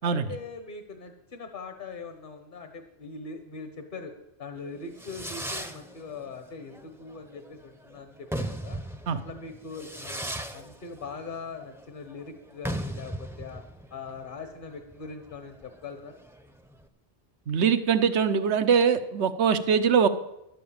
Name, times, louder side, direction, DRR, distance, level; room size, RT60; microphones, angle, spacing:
voice 1, 0.0-4.1 4.4-8.8 9.1-13.6 13.9-16.2, left 4 dB, 50° left, 7 dB, 1.3 m, -41 dB
Fireworks, 4.6-16.8, right 1 dB, 5° right, 0.7 m, -38 dB
voice 2, 17.5-20.1, right 6 dB, 80° right, 12 dB, 1.1 m, -22 dB
12.0 x 7.8 x 8.7 m, 0.85 s
omnidirectional pair, 1.1 m